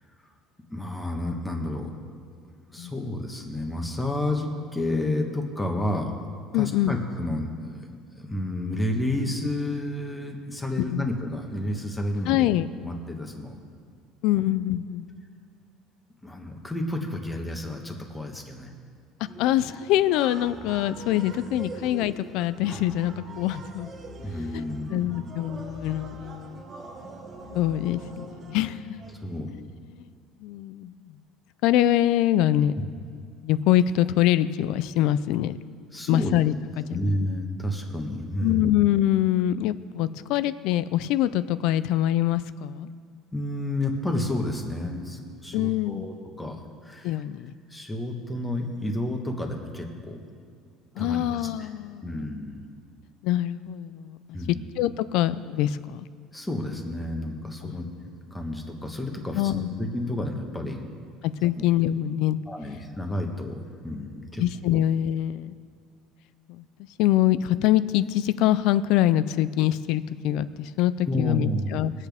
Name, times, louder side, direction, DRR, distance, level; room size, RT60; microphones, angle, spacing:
voice 1, 0.7-1.9 2.7-6.3 6.6-7.8 8.1-12.5 12.8-13.6 14.3-14.4 16.2-18.7 24.2-25.1 29.2-29.5 35.9-36.4 36.9-38.7 43.3-47.1 47.7-50.2 51.0-51.7 52.0-52.6 54.3-54.7 56.3-57.8 58.3-60.8 61.6-61.7 62.5-64.4 64.7-64.8 71.1-71.7, left 1 dB, 10° left, 2 dB, 1.3 m, -30 dB
voice 2, 6.5-7.0 10.8-11.1 12.3-12.7 14.2-15.1 19.4-23.9 24.5-26.6 27.5-29.0 29.9-30.1 30.4-31.1 31.6-32.7 33.4-35.6 36.1-37.1 38.4-42.9 45.5-46.1 47.0-47.5 51.0-52.3 53.2-54.4 54.8-56.1 57.6-57.8 59.3-59.9 61.2-62.4 64.4-65.6 66.5-66.6 67.0-71.9, left 13 dB, 65° left, 16 dB, 0.4 m, -24 dB
sound 1, 19.3-29.4, right 3 dB, 30° right, 1.3 m, -43 dB
21.5 x 8.2 x 3.5 m, 2.2 s
cardioid pair, 150°, 0 cm